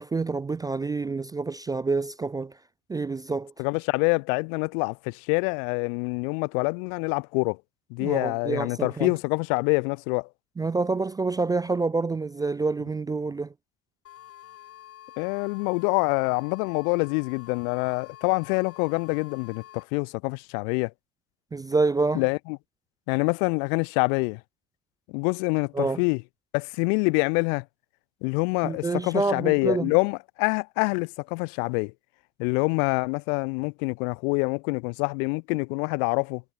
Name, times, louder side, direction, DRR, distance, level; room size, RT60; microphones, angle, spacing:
voice 1, 0.0-2.5 2.9-3.5 8.0-9.1 10.6-13.5 21.5-22.2 25.7-26.0 28.6-29.9, right 3 dB, 10° right, 0.4 m, -27 dB
voice 2, 3.6-7.6 7.9-10.3 15.2-20.9 22.1-22.6 23.1-24.4 25.1-26.2 26.5-27.6 28.2-31.9 32.4-36.4, left 39 dB, 75° left, 1.0 m, -26 dB
sound 1, 14.0-19.8, left 12 dB, 35° left, 2.1 m, -48 dB
cardioid pair, 165°, 42 cm